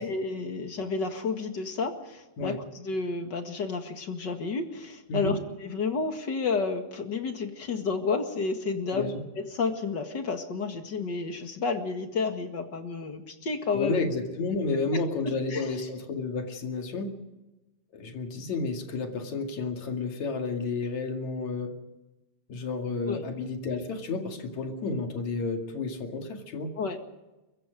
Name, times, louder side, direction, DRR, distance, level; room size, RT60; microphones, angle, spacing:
voice 1, 0.0-9.2 9.5-14.0 14.9-15.7 23.1-23.2 26.8-27.0, left 4 dB, 40° left, 6 dB, 2.2 m, -31 dB
voice 2, 13.7-17.1 17.9-21.8 22.5-26.8, left 3 dB, 70° left, 4 dB, 3.5 m, -31 dB
23.0 x 22.5 x 5.1 m, 1.0 s
omnidirectional pair, 3.4 m